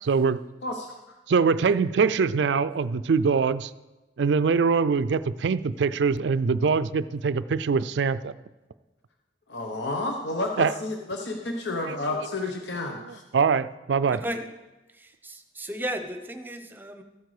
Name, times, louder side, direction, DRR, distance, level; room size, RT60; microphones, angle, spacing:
voice 1, 0.0-0.4 1.3-3.7 4.2-8.3 10.6-10.7 11.8-12.0 13.3-14.2, right 5 dB, 70° right, 16 dB, 0.4 m, -23 dB
voice 2, 0.6-1.2 9.5-13.2, left 2 dB, 65° left, 3 dB, 1.0 m, -31 dB
voice 3, 14.1-14.5 14.9-17.0, equal, 10° right, 7 dB, 0.8 m, -34 dB
14.0 x 8.1 x 4.9 m, 1.1 s
head